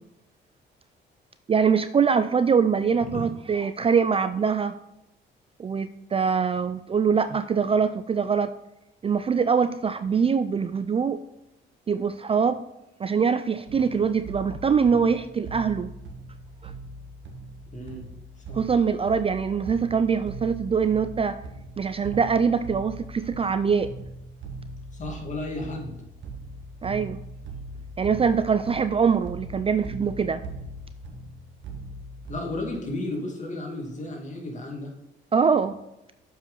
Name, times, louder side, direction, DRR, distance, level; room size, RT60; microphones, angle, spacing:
voice 1, 1.5-4.7 5.6-8.5 9.0-11.2 11.9-12.6 13.0-15.9 16.6-16.7 18.5-21.4 21.8-23.9 26.8-27.2 28.0-30.4 35.3-35.7, right 6 dB, 30° right, 12 dB, 0.4 m, -23 dB
sound 1, 13.7-32.7, right 2 dB, 70° right, 1.5 m, -40 dB
voice 2, 17.7-18.0 18.5-18.6 24.9-26.0 32.3-34.9, left 2 dB, 40° left, 0 dB, 2.5 m, -33 dB
7.5 x 5.5 x 5.6 m, 0.92 s
cardioid pair, 90°, 20 cm